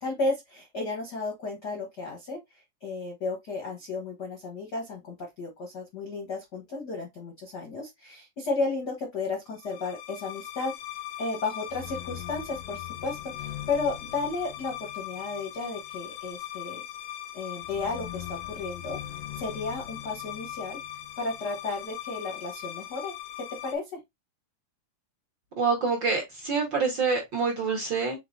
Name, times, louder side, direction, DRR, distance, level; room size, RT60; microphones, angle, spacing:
voice 1, 0.0-10.7 11.2-16.8 17.3-20.8 21.2-24.0, left 3 dB, 60° left, 1.0 m, -33 dB
sound 1, 9.6-23.7, left 12 dB, 90° left, 2.2 m, -39 dB
voice 2, 25.6-28.2, right 5 dB, 50° right, 1.5 m, -26 dB
5.5 x 3.8 x 2.6 m
omnidirectional pair, 3.6 m